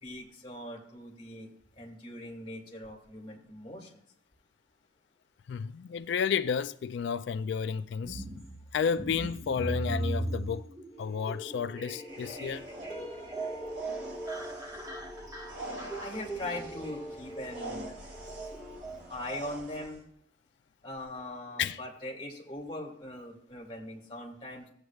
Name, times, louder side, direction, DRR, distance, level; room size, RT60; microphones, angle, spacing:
voice 1, 0.0-1.5 1.8-3.9 16.0-18.0 19.1-20.0 20.8-24.7, left 1 dB, 25° left, 2.0 m, -41 dB
voice 2, 5.5-8.2 8.7-10.7 11.0-12.7 21.6-21.8, left 6 dB, 65° left, 0.3 m, -31 dB
sound 1, 8.0-19.9, right 1 dB, 20° right, 1.0 m, -40 dB
sound 2, 10.9-18.8, right 1 dB, 10° left, 1.7 m, -45 dB
sound 3, 12.1-20.0, right 1 dB, 75° right, 2.5 m, -46 dB
16.5 x 7.9 x 2.4 m
head